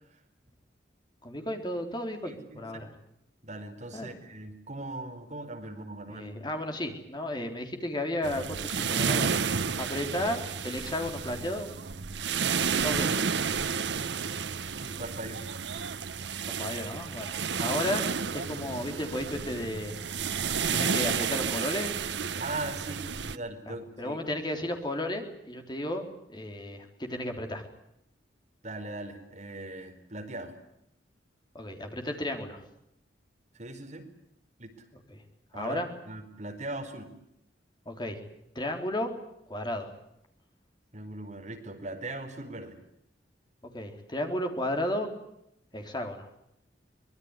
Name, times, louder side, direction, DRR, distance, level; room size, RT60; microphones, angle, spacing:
voice 1, 1.2-2.9 3.9-4.1 6.1-9.3 9.8-11.7 12.8-13.2 16.6-18.0 18.3-19.9 20.7-21.9 23.7-27.6 31.5-32.6 35.1-35.2 35.5-35.9 37.9-38.2 38.6-39.1 39.5-39.9 43.7-45.1 45.7-46.3, left 1 dB, 25° left, 4 dB, 3.7 m, -33 dB
voice 2, 2.2-2.6 3.4-6.3 12.6-13.0 14.7-15.4 22.4-24.2 28.6-30.5 33.5-34.1 34.6-34.7 35.5-37.1 40.9-42.8, right 2 dB, 40° right, 4 dB, 4.5 m, -39 dB
sound 1, 8.2-23.4, right 6 dB, 80° right, 0.9 m, -31 dB
24.5 x 21.0 x 9.8 m, 0.79 s
head